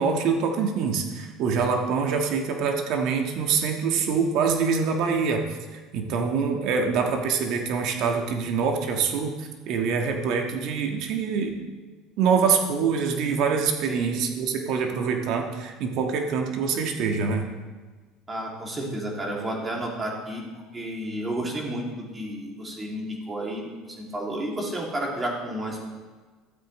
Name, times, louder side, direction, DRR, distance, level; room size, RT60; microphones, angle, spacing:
voice 1, 0.0-5.4 5.7-11.6 12.2-17.5, right 5 dB, 65° right, 3 dB, 1.5 m, -25 dB
voice 2, 13.9-14.2 18.3-20.4 20.7-21.8 22.1-25.8, right 1 dB, 20° right, -1 dB, 2.6 m, -31 dB
13.5 x 8.2 x 3.2 m, 1.4 s
supercardioid pair, 110°, 0 cm